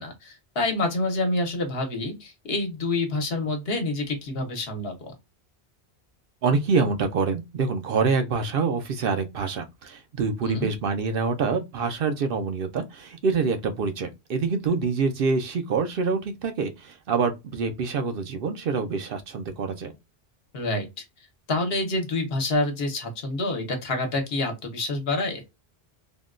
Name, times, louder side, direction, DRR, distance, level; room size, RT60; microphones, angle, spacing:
voice 1, 0.0-5.1 10.4-10.7 20.5-21.0 21.5-25.4, left 2 dB, 70° left, 1.1 m, -27 dB
voice 2, 6.4-19.9, right 4 dB, 65° right, 0.7 m, -26 dB
3.5 x 2.2 x 2.4 m
omnidirectional pair, 1.1 m